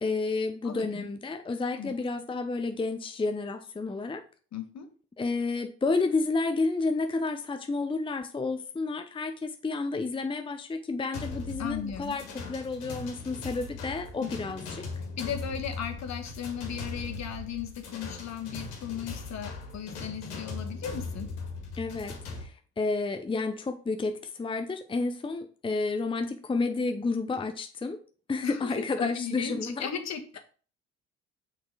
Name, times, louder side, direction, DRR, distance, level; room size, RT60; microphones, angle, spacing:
voice 1, 0.0-4.2 5.2-14.8 21.8-28.0 28.3-29.9, left 3 dB, 15° left, 7 dB, 0.7 m, -31 dB
voice 2, 0.6-1.1 1.7-1.9 4.5-4.9 11.6-12.2 14.2-14.3 15.2-21.3 28.4-30.4, left 8 dB, 55° left, 6 dB, 1.4 m, -36 dB
sound 1, 11.1-22.4, left 3 dB, 85° left, 1.8 m, -39 dB
6.2 x 4.1 x 4.7 m, 0.40 s
hypercardioid pair, 60°, 33 cm